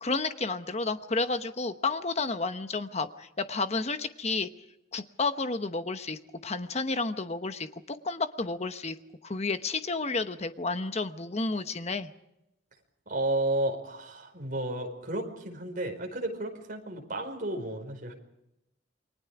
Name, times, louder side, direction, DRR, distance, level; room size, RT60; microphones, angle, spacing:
voice 1, 0.0-4.5 4.9-9.0 9.2-12.1, left 3 dB, 35° left, 9 dB, 1.1 m, -31 dB
voice 2, 13.1-18.1, right 1 dB, 45° right, 3 dB, 4.9 m, -32 dB
29.0 x 22.5 x 4.9 m, 0.85 s
head